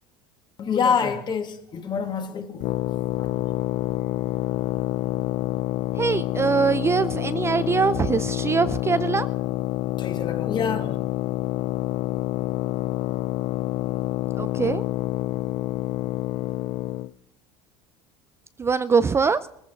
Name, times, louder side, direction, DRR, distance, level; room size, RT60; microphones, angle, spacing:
voice 1, 0.6-3.3 10.0-11.0, left 6 dB, 35° left, 6 dB, 2.1 m, -27 dB
sound 1, 2.6-17.1, left 16 dB, 55° left, 0.5 m, -27 dB
voice 2, 6.0-9.3 14.4-14.8 18.6-19.5, right 5 dB, 20° right, 13 dB, 0.5 m, -22 dB
18.5 x 14.5 x 4.6 m, 0.75 s
supercardioid pair, 115°, 13 cm